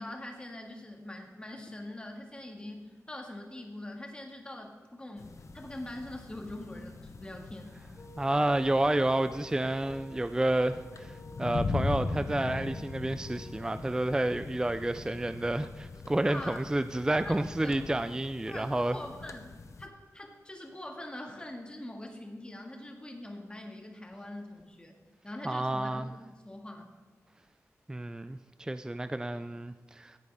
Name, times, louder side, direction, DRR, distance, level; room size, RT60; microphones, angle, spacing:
voice 1, 0.0-6.9 7.2-7.8 16.2-16.6 17.1-17.8 18.5-24.9 25.2-26.1 26.4-26.9, left 1 dB, 15° left, 2 dB, 2.0 m, -43 dB
sound 1, 5.2-19.9, left 3 dB, 60° left, 0.9 m, -40 dB
sound 2, 8.0-13.9, left 1 dB, 45° left, 2.4 m, -53 dB
voice 2, 8.2-19.0 25.4-26.1 27.9-30.2, right 1 dB, 10° right, 11 dB, 0.4 m, -30 dB
16.5 x 9.2 x 3.6 m, 1.5 s
wide cardioid pair, 85°, 6 cm